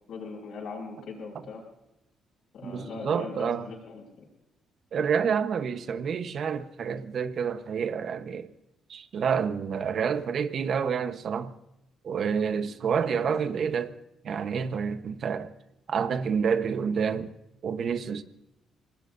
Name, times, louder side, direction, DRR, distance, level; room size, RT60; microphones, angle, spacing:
voice 1, 0.1-1.6 2.5-4.2 13.0-13.4, left 4 dB, 65° left, 5.8 m, -40 dB
voice 2, 2.6-3.7 4.9-8.5 8.9-11.5 12.0-13.9 14.2-15.5 15.9-17.3 17.6-18.2, right 6 dB, 60° right, 1.0 m, -28 dB
26.0 x 19.5 x 2.7 m
cardioid pair, 90°, 0 cm